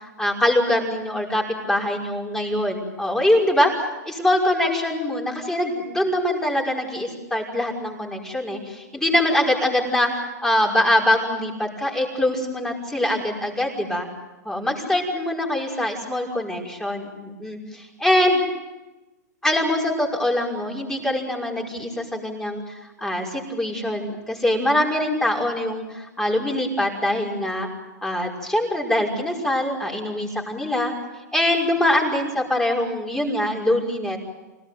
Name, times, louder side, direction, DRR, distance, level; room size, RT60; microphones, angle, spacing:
voice 1, 0.2-3.7 4.0-10.1 10.4-14.1 14.4-18.4 19.4-22.6 23.0-27.7 28.0-30.9 31.3-34.2, left 1 dB, 5° left, -1 dB, 5.7 m, -23 dB
26.5 x 18.5 x 9.4 m, 1.1 s
hypercardioid pair, 130°, 10 cm